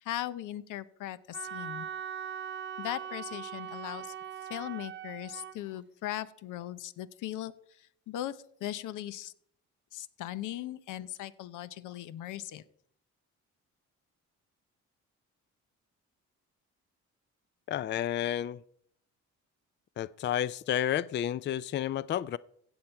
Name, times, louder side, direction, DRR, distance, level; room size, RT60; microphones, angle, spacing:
voice 1, 0.0-1.9 2.8-4.1 4.5-7.5 7.8-9.3 9.9-12.6, left 13 dB, 85° left, 0.7 m, -38 dB
Wind instrument woodwind instrument, 1.3-5.6, right 8 dB, 40° right, 0.5 m, -40 dB
voice 2, 17.7-18.6 20.0-22.4, left 11 dB, 40° left, 0.4 m, -31 dB
15.5 x 7.3 x 4.5 m
cardioid pair, 90°, 30 cm